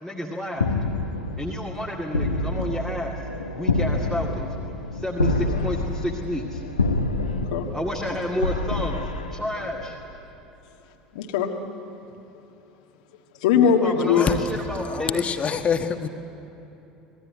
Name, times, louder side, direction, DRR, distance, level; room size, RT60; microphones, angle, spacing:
voice 1, 0.0-0.7 1.4-3.1 3.5-4.5 4.9-6.6 7.7-9.0 9.3-10.0 13.5-15.2, equal, 5° right, 0 dB, 2.2 m, -30 dB
sound 1, 0.6-10.1, left 2 dB, 85° left, 1.2 m, -27 dB
voice 2, 7.3-7.7 11.1-11.5 13.4-14.4, left 7 dB, 60° left, 3 dB, 1.6 m, -21 dB
voice 3, 14.8-16.1, left 6 dB, 30° left, 6 dB, 1.7 m, -25 dB
26.5 x 19.5 x 9.5 m, 3.0 s
figure-of-eight pair, 70°, 4 cm